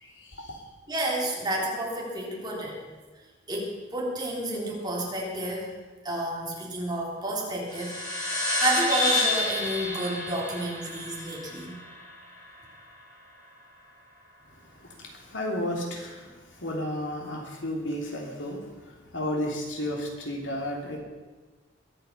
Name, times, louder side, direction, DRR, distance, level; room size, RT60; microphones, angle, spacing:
voice 1, 0.0-0.6 14.8-16.3 16.6-18.6 19.1-21.0, left 1 dB, 80° left, 0 dB, 3.2 m, -32 dB
voice 2, 0.9-2.8 3.5-5.7 6.0-8.3 8.6-11.8, right 1 dB, 20° right, -3 dB, 3.3 m, -30 dB
sound 1, 7.7-12.6, left 2 dB, 20° left, 6.4 m, -29 dB
21.5 x 9.1 x 5.7 m, 1.3 s
head